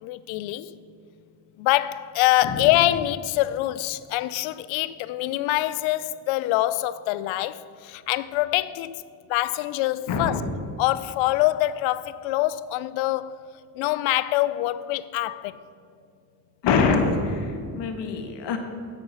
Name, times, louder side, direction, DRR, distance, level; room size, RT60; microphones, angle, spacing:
voice 1, 0.0-0.7 1.6-9.0 9.3-10.4 10.8-13.4 13.8-15.6, left 16 dB, 80° left, 0.6 m, -25 dB
voice 2, 10.1-10.5 16.6-18.6, left 4 dB, 60° left, 1.6 m, -24 dB
9.2 x 8.1 x 5.5 m
cardioid pair, 85°, 46 cm